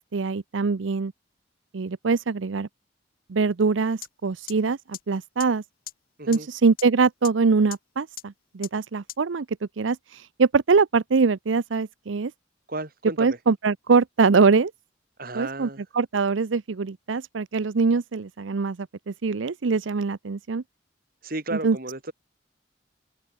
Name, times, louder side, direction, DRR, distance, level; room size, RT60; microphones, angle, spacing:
voice 1, 0.1-1.1 1.7-2.7 3.3-5.6 6.3-9.5 9.8-12.3 13.2-14.7 15.3-15.7 15.9-18.8 19.1-20.6 21.5-21.8, right 4 dB, 85° right, 0.6 m, -23 dB
sound 1, 4.0-4.1 4.5-4.6 4.9-5.0 5.4-5.5 5.9-6.0 6.3-6.4 6.8-6.9 7.2-7.3 7.7-7.8 8.2-8.3 8.6-8.7 9.1-9.2, left 13 dB, 50° left, 1.3 m, -35 dB
voice 2, 12.7-13.4 15.2-15.8 21.2-22.1, right 2 dB, 50° right, 5.3 m, -33 dB
head